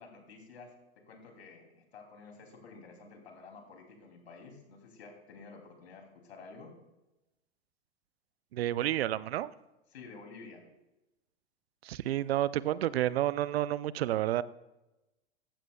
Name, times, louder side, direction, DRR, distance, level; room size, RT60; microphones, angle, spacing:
voice 1, 0.0-6.7 9.9-10.7, left 4 dB, 75° left, 3 dB, 3.0 m, -51 dB
voice 2, 8.5-9.5 11.8-14.4, right 13 dB, 70° right, 18 dB, 0.6 m, -30 dB
15.0 x 13.5 x 2.3 m, 0.98 s
figure-of-eight pair, 90°, 32 cm